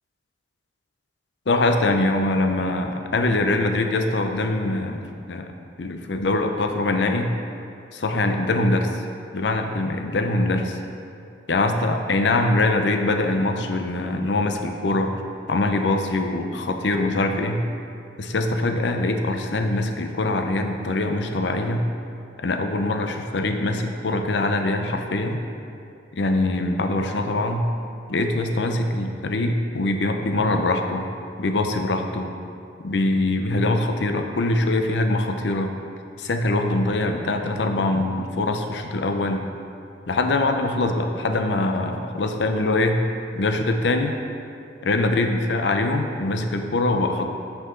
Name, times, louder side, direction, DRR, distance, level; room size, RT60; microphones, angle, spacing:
voice 1, 1.5-5.0 5.3-5.5 5.8-7.3 7.9-8.9 9.3-10.8 11.5-15.2 15.5-17.6 18.2-21.8 22.4-25.4 26.1-27.7 28.1-31.0 31.4-32.3 32.8-35.7 36.2-39.5 40.1-43.0 43.4-44.1 44.8-47.3, left 2 dB, 70° left, 5 dB, 0.6 m, -23 dB
8.2 x 5.8 x 3.8 m, 2.5 s
head